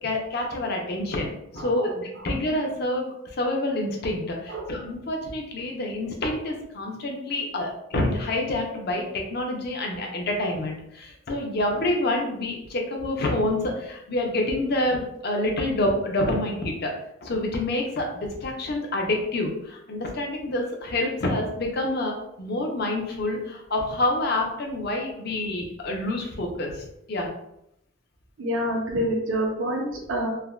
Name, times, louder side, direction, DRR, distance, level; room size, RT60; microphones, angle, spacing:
voice 1, 0.0-16.9 17.2-26.8 27.1-27.3, left 1 dB, 50° left, 1 dB, 0.5 m, -27 dB
voice 2, 1.6-1.9 4.5-4.6 28.4-30.3, right 1 dB, 75° right, -1 dB, 0.6 m, -27 dB
3.3 x 2.1 x 2.3 m, 0.80 s
head